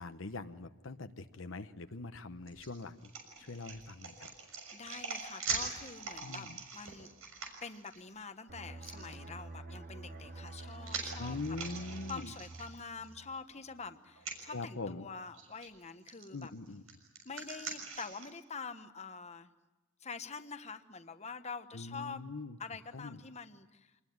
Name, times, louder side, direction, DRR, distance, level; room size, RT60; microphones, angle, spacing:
voice 1, 0.0-3.1 3.4-4.3 6.2-6.6 11.2-12.3 14.5-15.1 16.3-16.8 21.7-22.6 22.9-23.2, left 3 dB, 65° left, 8 dB, 1.0 m, -42 dB
sound 1, 2.5-8.0 8.8-8.9 10.1-13.1 13.5-13.6 14.1-14.4 15.3-15.7 16.1-18.3, right 4 dB, 85° right, 6.2 m, -43 dB
voice 2, 4.7-7.1 7.6-11.4 12.0-16.5 17.2-19.5 20.0-22.2 22.6-23.9, left 5 dB, 35° left, 8 dB, 1.2 m, -46 dB
sound 2, 8.5-13.9 14.2-14.4, right 2 dB, 45° right, 2.8 m, -48 dB
26.0 x 20.5 x 9.5 m, 1.1 s
head